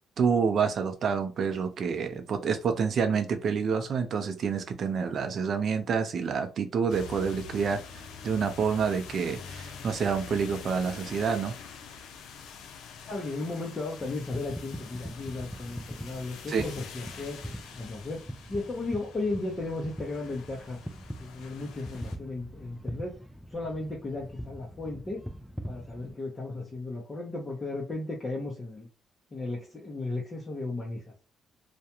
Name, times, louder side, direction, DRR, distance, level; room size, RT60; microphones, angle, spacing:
voice 1, 0.2-11.6 16.5-16.6, right 6 dB, 60° right, 7 dB, 0.5 m, -28 dB
sound 1, 6.9-22.2, left 6 dB, 85° left, 0.4 m, -46 dB
voice 2, 13.1-18.2 18.5-20.8 21.2-23.2 23.5-25.2 25.7-28.9 29.3-31.2, left 2 dB, 25° left, -3 dB, 0.7 m, -35 dB
sound 2, 14.0-26.1, equal, ahead, 0.4 m, -43 dB
2.4 x 2.2 x 2.8 m, 0.32 s
cardioid pair, 90°, 0 cm